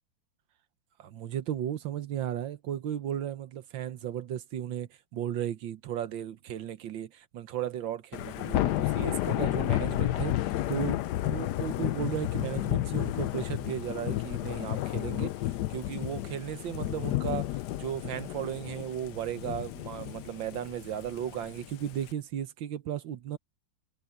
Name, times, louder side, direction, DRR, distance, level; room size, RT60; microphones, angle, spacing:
voice 1, 1.0-23.4, right 10 dB, 85° right, 1.8 m, -35 dB
Thunder / Rain, 8.1-22.1, left 15 dB, 75° left, 1.1 m, -31 dB
omnidirectional pair, 2.0 m